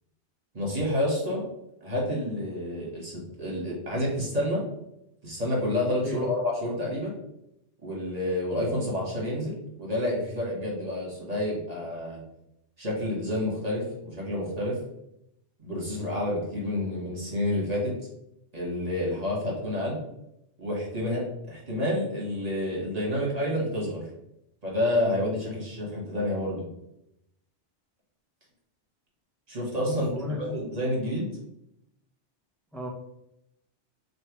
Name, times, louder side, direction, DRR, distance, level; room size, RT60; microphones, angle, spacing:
voice 1, 0.5-1.4 1.8-4.6 5.2-7.1 7.8-12.2 12.8-14.8 15.6-17.9 18.5-20.0 20.6-24.0 24.6-26.6 29.5-30.1 30.4-31.3, left 1 dB, 35° right, -4 dB, 1.6 m, -29 dB
voice 2, 29.9-30.6 32.7-32.9, left 2 dB, ahead, -4 dB, 0.7 m, -33 dB
3.4 x 3.1 x 4.4 m, 0.81 s
omnidirectional pair, 1.2 m